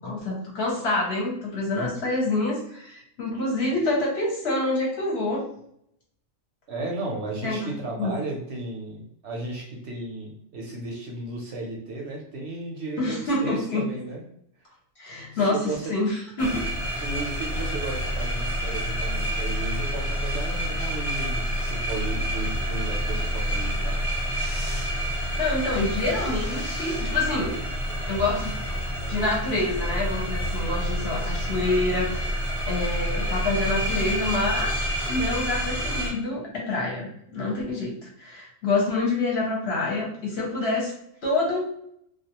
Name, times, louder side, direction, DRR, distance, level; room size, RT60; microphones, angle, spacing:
voice 1, 0.0-5.4 7.4-7.7 8.0-8.1 13.0-13.8 15.0-16.7 25.4-27.6 28.1-28.5 29.1-34.7 35.0-40.9 41.2-41.6, left 2 dB, 60° left, -2 dB, 0.8 m, -27 dB
voice 2, 6.7-14.2 15.3-15.9 17.0-24.0, right 2 dB, 65° right, -1 dB, 0.7 m, -34 dB
sound 1, 16.4-36.1, equal, 30° left, 0.9 m, -28 dB
2.3 x 2.3 x 2.8 m, 0.70 s
omnidirectional pair, 1.4 m